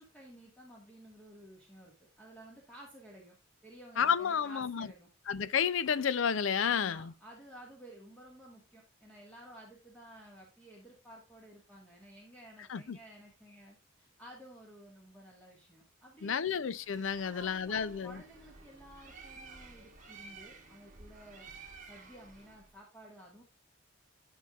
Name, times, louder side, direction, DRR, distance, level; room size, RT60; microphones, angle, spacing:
voice 1, 0.0-3.3 3.6-5.1 6.6-16.5 17.2-21.5 21.8-23.4, right 1 dB, 5° left, 1.6 m, -54 dB
voice 2, 4.0-4.9 5.3-7.1 12.7-13.0 16.2-18.2, left 7 dB, 70° left, 0.5 m, -31 dB
Bird, 16.7-22.7, right 4 dB, 35° right, 1.3 m, -53 dB
10.5 x 5.6 x 2.4 m
head